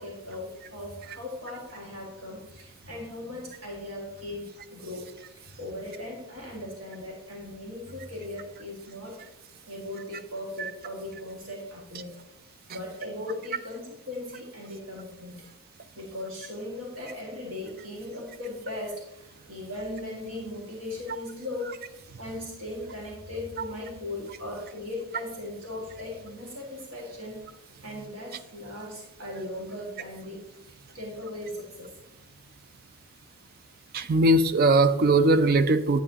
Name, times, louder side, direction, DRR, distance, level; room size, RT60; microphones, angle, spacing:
voice 1, 0.0-9.3 9.7-12.2 12.7-15.5 16.0-27.5 27.8-30.4 30.9-31.9, left 1 dB, 65° right, -2 dB, 1.9 m, -38 dB
voice 2, 33.9-36.0, right 2 dB, 45° right, 12 dB, 0.4 m, -20 dB
9.7 x 8.0 x 2.8 m, 0.91 s
head